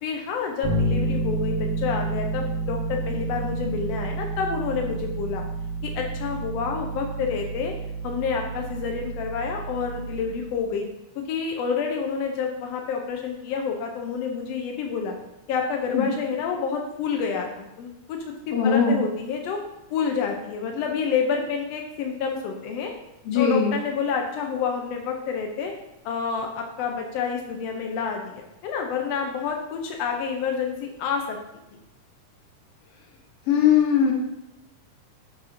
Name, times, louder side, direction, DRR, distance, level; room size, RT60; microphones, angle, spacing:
voice 1, 0.0-5.4 5.8-7.7 8.0-10.8 11.1-15.1 15.5-18.2 18.5-19.6 19.9-22.9 23.3-25.7 26.0-31.4, left 6 dB, 80° left, 2 dB, 1.4 m, -28 dB
Bass guitar, 0.6-10.5, right 2 dB, 70° right, 0.4 m, -30 dB
voice 2, 18.5-19.0 23.3-23.7 33.5-34.1, left 7 dB, 60° left, 0 dB, 1.9 m, -20 dB
8.0 x 5.7 x 2.7 m, 0.91 s
omnidirectional pair, 3.6 m